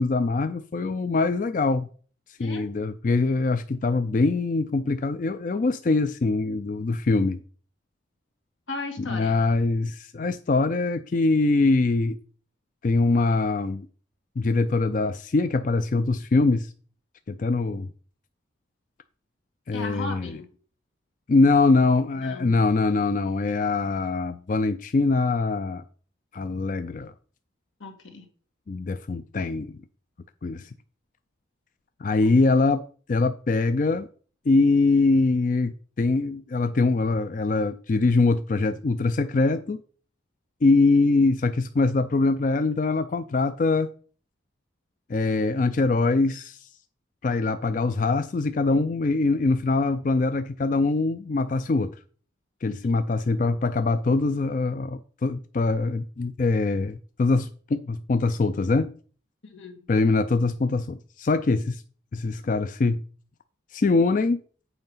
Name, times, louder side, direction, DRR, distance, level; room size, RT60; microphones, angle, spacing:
voice 1, 0.0-1.9 2.4-7.4 9.0-12.2 12.8-13.9 14.4-16.7 17.3-17.9 19.7-20.4 21.3-25.8 26.3-27.1 28.7-29.8 30.4-30.7 32.0-32.8 33.1-34.1 34.5-39.8 40.6-43.9 45.1-46.7 47.2-51.9 52.6-58.9 59.9-61.8 62.1-63.0 63.7-64.4, left 3 dB, 40° left, 0.4 m, -23 dB
voice 2, 8.7-9.4 19.7-20.5 22.2-22.6 27.8-28.3 32.2-32.4 59.4-59.8, left 3 dB, 85° left, 1.9 m, -37 dB
8.0 x 4.9 x 5.4 m
head